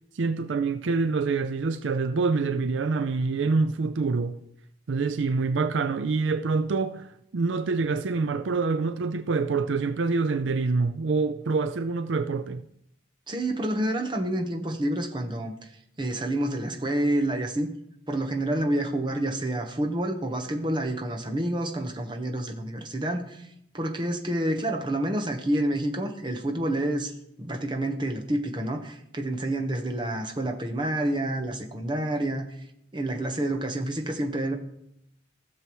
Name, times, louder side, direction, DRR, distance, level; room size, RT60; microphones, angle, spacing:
voice 1, 0.1-4.4 4.9-7.1 7.3-12.6, right 4 dB, 70° right, 0.4 m, -26 dB
voice 2, 13.3-15.7 16.0-17.7 18.1-23.5 23.7-27.1 27.4-32.5 32.9-34.6, right 1 dB, 25° right, 1.0 m, -28 dB
16.5 x 6.8 x 3.1 m
head